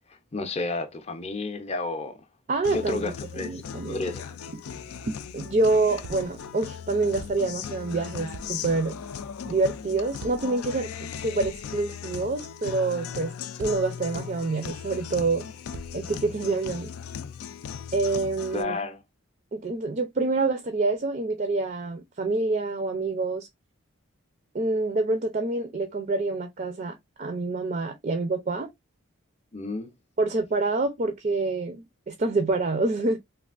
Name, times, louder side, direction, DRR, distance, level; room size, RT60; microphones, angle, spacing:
voice 1, 0.3-2.2 2.7-4.5 18.5-19.0 29.5-29.9, left 3 dB, 30° left, 0.5 m, -32 dB
voice 2, 2.5-4.1 5.1-9.0 9.5-13.3 13.6-15.4 15.9-16.9 17.9-18.8 19.5-23.5 24.5-28.7 30.2-33.2, right 3 dB, 35° right, 0.4 m, -27 dB
Guitar, 2.6-18.6, left 7 dB, 85° left, 0.4 m, -38 dB
sound 1, 6.0-6.6 7.2-7.7 8.3-8.9 10.1-10.7 11.4-12.3 13.6-14.2 15.7-16.4, right 3 dB, 90° right, 0.5 m, -45 dB
3.3 x 2.4 x 2.4 m
head